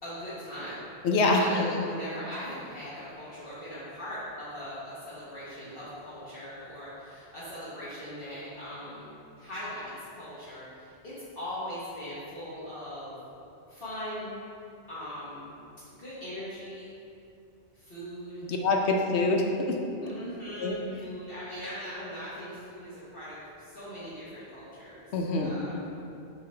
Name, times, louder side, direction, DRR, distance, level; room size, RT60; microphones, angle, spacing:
voice 1, 0.0-0.8 1.3-9.1 9.4-13.2 13.7-14.3 14.9-15.5 16.0-16.9 17.7-18.4 20.0-25.1 25.4-25.8, equal, 55° left, -12 dB, 1.5 m, -40 dB
voice 2, 1.0-1.6 18.4-19.8 20.6-20.7 25.1-25.6, left 2 dB, 75° left, 1 dB, 1.0 m, -25 dB
6.3 x 5.8 x 3.4 m, 2.6 s
omnidirectional pair, 1.1 m